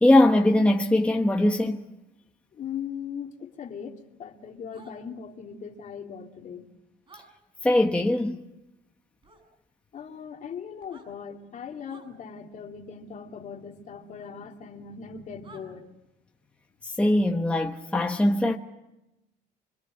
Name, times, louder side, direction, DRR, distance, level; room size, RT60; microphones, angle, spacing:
voice 1, 0.0-1.8 7.6-8.4 16.8-18.6, left 1 dB, 5° left, 1.2 m, -21 dB
voice 2, 2.5-6.7 9.9-15.9, left 7 dB, 50° left, 2.4 m, -39 dB
sound 1, 4.7-4.9 7.1-7.3 9.2-9.4 10.8-11.1 11.9-12.1 14.2-14.3 15.4-15.7, right 3 dB, 30° right, 7.5 m, -51 dB
26.0 x 22.5 x 7.8 m
cardioid pair, 110°, 17 cm